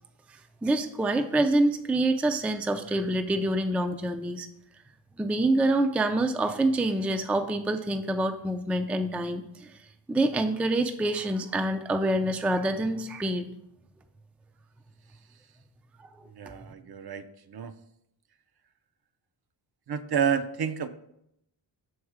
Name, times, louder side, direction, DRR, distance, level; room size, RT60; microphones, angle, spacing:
voice 1, 0.3-4.5 5.2-9.7 10.1-13.5, right 1 dB, 5° right, 7 dB, 0.3 m, -26 dB
voice 2, 16.4-17.7 19.9-20.9, right 7 dB, 55° right, 10 dB, 0.5 m, -30 dB
6.3 x 4.7 x 4.8 m, 0.78 s
wide cardioid pair, 105°, 47 cm